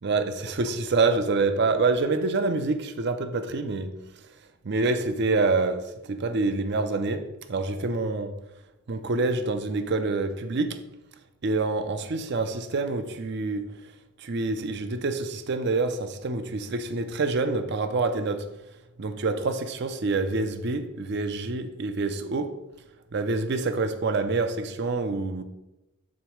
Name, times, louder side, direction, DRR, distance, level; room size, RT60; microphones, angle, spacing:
voice 1, 0.0-3.9 4.6-8.3 8.9-10.8 11.4-13.7 14.2-18.5 19.0-22.5 23.1-25.4, right 3 dB, 50° right, 0.5 m, -26 dB
7.4 x 3.9 x 4.5 m
head